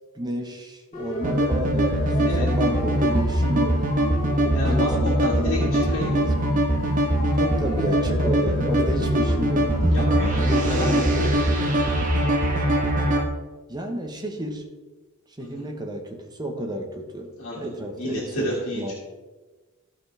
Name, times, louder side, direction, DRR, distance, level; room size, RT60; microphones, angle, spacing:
voice 1, 0.1-3.8 4.6-6.5 7.4-9.7 10.4-11.1 13.7-14.7 15.4-18.9, right 1 dB, 20° right, 3 dB, 1.1 m, -31 dB
Siren, 0.9-11.3, left 2 dB, 35° left, 2.5 m, -34 dB
sound 1, 1.2-13.2, right 1 dB, 35° right, 1.2 m, -22 dB
voice 2, 4.5-4.9 5.2-6.3 9.9-11.3 11.5-11.6 15.4-15.7 17.4-18.9, left 1 dB, 65° left, -6 dB, 2.1 m, -31 dB
15.0 x 5.9 x 3.4 m, 1.2 s
head